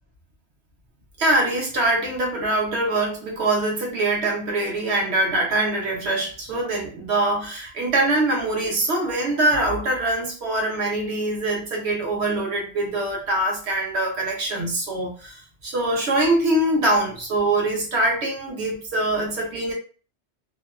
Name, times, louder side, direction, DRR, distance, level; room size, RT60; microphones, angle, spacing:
voice 1, 1.2-19.7, right 2 dB, 70° right, 0 dB, 1.1 m, -23 dB
2.8 x 2.2 x 2.3 m, 0.38 s
omnidirectional pair, 1.2 m